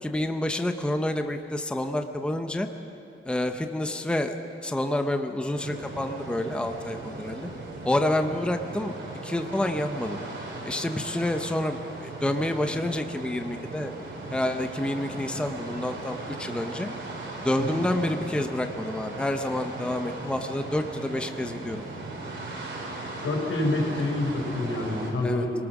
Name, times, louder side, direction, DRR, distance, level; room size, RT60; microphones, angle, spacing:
voice 1, 0.0-2.7 3.2-4.4 4.6-7.5 7.8-9.0 9.2-10.2 10.6-13.9 14.3-16.9 17.4-21.8 25.2-25.5, left 1 dB, 5° left, 6 dB, 0.8 m, -28 dB
sound 1, 5.5-25.1, right 2 dB, 65° right, 4.2 m, -38 dB
voice 2, 23.2-25.5, left 2 dB, 90° left, -1 dB, 5.1 m, -27 dB
26.0 x 19.5 x 6.1 m, 2.8 s
wide cardioid pair, 160°, 21 cm